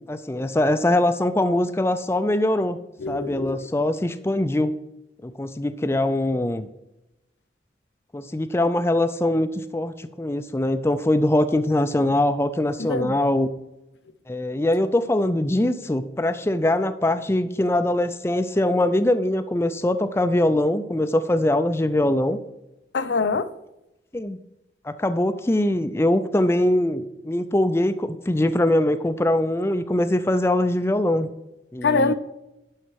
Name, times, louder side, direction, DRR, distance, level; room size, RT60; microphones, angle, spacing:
voice 1, 0.1-2.8 3.1-4.7 5.2-6.7 8.1-13.5 14.3-22.4 24.1-24.4 24.9-31.3 31.7-32.1, left 1 dB, 15° left, 0.4 m, -22 dB
voice 2, 3.0-3.7 12.8-13.1 22.9-23.5 31.8-32.1, left 4 dB, 85° left, 0.6 m, -24 dB
11.0 x 5.6 x 4.7 m
head